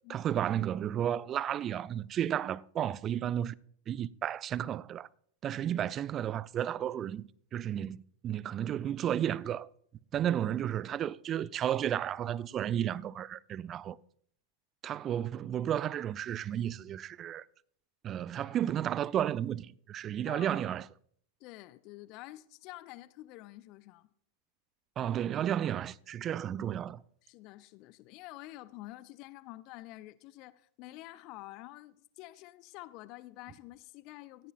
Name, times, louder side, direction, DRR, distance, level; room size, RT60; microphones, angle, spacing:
voice 1, 0.1-3.5 3.9-5.1 5.4-9.7 10.1-14.0 14.8-17.4 18.0-20.8 25.0-27.0, right 10 dB, 30° right, 0.4 m, -33 dB
voice 2, 20.3-20.6 21.4-24.1 26.6-26.7 27.2-34.5, left 17 dB, 40° left, 0.6 m, -48 dB
17.0 x 15.5 x 2.4 m
figure-of-eight pair, 90°, 0 cm